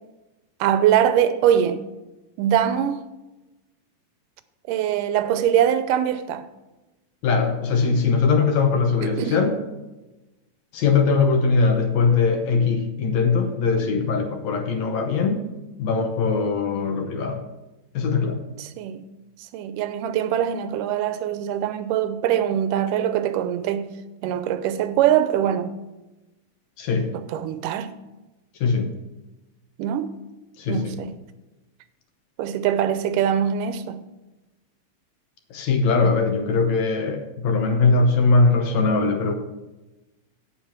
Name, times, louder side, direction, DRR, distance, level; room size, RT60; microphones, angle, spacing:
voice 1, 0.6-1.8 2.4-3.0 4.7-6.5 9.0-9.4 18.6-19.0 19.4-23.9 24.2-25.7 27.1-27.9 29.8-30.1 30.7-31.1 32.4-34.0, right 10 dB, 85° right, 2.2 m, -22 dB
voice 2, 7.2-9.6 10.7-15.5 15.8-17.4 17.9-18.4 26.8-27.1 28.6-28.9 30.6-31.0 35.5-39.3, left 4 dB, 70° left, 1.9 m, -21 dB
8.5 x 8.0 x 5.8 m
omnidirectional pair, 3.8 m